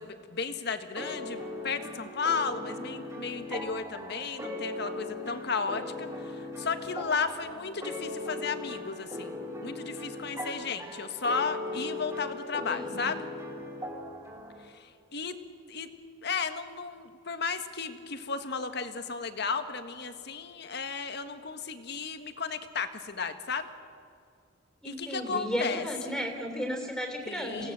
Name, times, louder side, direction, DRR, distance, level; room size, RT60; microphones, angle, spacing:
voice 1, 0.0-13.3 14.6-15.4 15.7-15.9 16.2-23.7 24.8-25.9 27.2-27.7, left 5 dB, 60° left, 8 dB, 1.6 m, -34 dB
sound 1, 1.0-14.7, left 2 dB, 15° right, 3.9 m, -39 dB
voice 2, 24.8-27.7, equal, 5° left, 3 dB, 3.1 m, -34 dB
27.0 x 17.5 x 7.7 m, 2.3 s
head